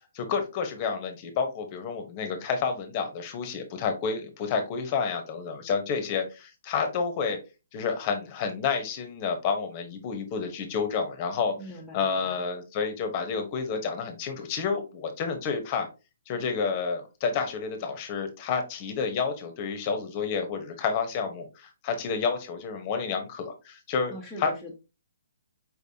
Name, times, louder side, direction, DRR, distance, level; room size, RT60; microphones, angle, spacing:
voice 1, 0.1-7.4 7.7-11.5 11.9-15.9 16.3-24.1 24.4-24.5, left 5 dB, 30° left, 7 dB, 1.0 m, -30 dB
voice 2, 11.6-12.4 24.1-24.7, left 1 dB, 5° left, -5 dB, 0.7 m, -41 dB
4.7 x 3.3 x 2.8 m, 0.28 s
hypercardioid pair, 155°, 0 cm